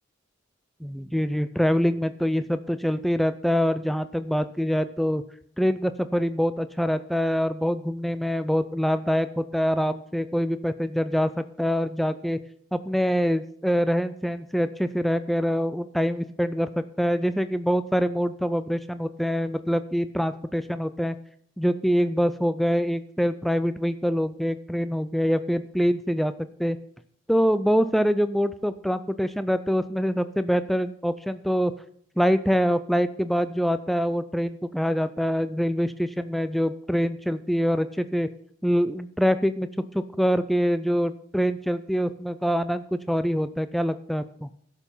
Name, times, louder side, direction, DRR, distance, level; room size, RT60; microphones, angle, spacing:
voice 1, 1.1-5.2 5.6-12.4 12.7-21.2 21.6-26.3 26.6-26.8 27.3-31.7 32.2-38.3 38.6-39.7 39.9-44.5, equal, ahead, 11 dB, 0.4 m, -25 dB
11.5 x 6.8 x 5.5 m, 0.65 s
head